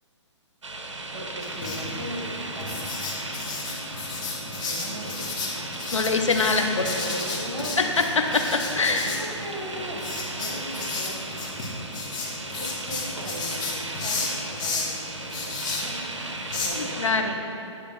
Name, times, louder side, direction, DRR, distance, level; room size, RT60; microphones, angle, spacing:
sound 1, 0.6-17.1, right 2 dB, 75° right, 0.8 m, -36 dB
voice 1, 1.1-2.8 4.6-5.7 6.7-7.8 9.0-11.3 12.3-17.5, right 1 dB, 55° right, -1 dB, 1.8 m, -38 dB
Writing, 1.4-16.7, left 3 dB, 40° left, 1.6 m, -33 dB
voice 2, 5.9-7.0 7.8-9.2 16.8-17.4, left 4 dB, 80° left, 4 dB, 0.8 m, -24 dB
9.6 x 3.3 x 5.8 m, 2.8 s
figure-of-eight pair, 135°, 16 cm